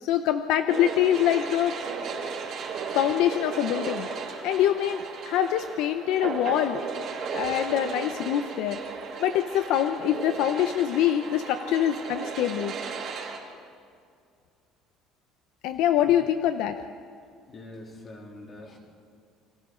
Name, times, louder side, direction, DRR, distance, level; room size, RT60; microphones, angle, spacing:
voice 1, 0.0-1.7 2.9-4.1 4.4-6.8 7.3-8.8 9.2-12.7 15.6-16.8, left 11 dB, 65° left, 8 dB, 0.8 m, -24 dB
sound 1, 0.7-13.4, right 5 dB, 45° right, 3.0 m, -35 dB
voice 2, 17.5-18.8, left 1 dB, 25° left, 0 dB, 3.3 m, -44 dB
29.0 x 24.0 x 3.9 m, 2.3 s
cardioid pair, 175°, 0 cm